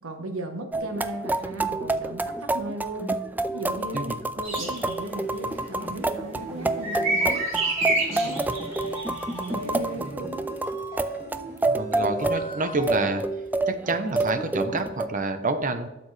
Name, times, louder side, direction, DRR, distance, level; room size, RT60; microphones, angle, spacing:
voice 1, 0.0-3.2 3.5-7.4 8.0-8.6 9.3-10.5, right 1 dB, 80° right, 5 dB, 1.3 m, -36 dB
sound 1, 0.7-15.1, right 2 dB, 10° right, 0.3 m, -29 dB
sound 2, 4.4-4.9 6.8-9.5, right 2 dB, 65° right, 3.4 m, -27 dB
sound 3, 6.3-13.2, equal, 30° left, 3.2 m, -39 dB
voice 2, 11.7-13.2 13.7-15.9, right 2 dB, 40° right, 8 dB, 0.9 m, -27 dB
12.0 x 7.0 x 3.3 m, 0.98 s
head